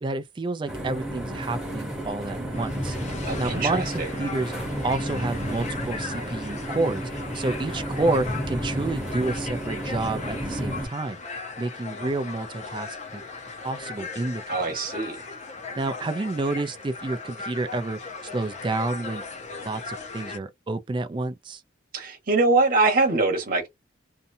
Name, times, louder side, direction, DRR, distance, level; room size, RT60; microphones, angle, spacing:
voice 1, 0.0-3.0 3.4-4.5 4.8-11.2 11.6-13.2 13.6-14.4 15.7-18.0 18.3-19.2 19.6-21.6, right 2 dB, 25° right, 0.3 m, -29 dB
sound 1, 0.7-10.9, equal, 5° right, 0.8 m, -31 dB
sound 2, 2.5-20.4, left 4 dB, 35° left, 0.6 m, -38 dB
voice 2, 3.3-4.1 14.5-15.2 21.9-23.7, right 3 dB, 45° right, 1.0 m, -23 dB
2.7 x 2.2 x 2.6 m
head